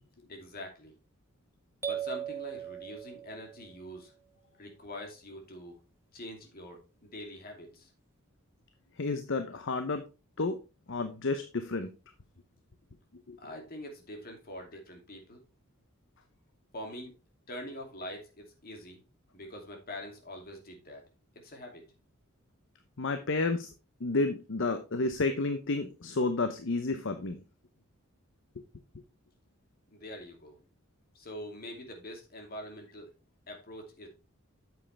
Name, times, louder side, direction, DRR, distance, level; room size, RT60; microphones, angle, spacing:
voice 1, 0.3-0.9 1.8-4.1 4.6-5.8 6.1-7.9 13.4-15.4 16.7-17.1 17.5-19.0 19.3-21.0 21.4-21.8 29.9-30.6 31.1-33.1 33.5-34.1, left 1 dB, 45° left, 3 dB, 2.5 m, -44 dB
sound 1, 1.8-3.7, right 9 dB, 10° right, 1.3 m, -38 dB
voice 2, 9.0-10.1 10.4-10.6 10.9-11.9 13.3-13.4 23.0-23.7 24.0-27.4, left 3 dB, 60° left, 8 dB, 0.8 m, -31 dB
8.8 x 7.5 x 3.3 m, 0.30 s
head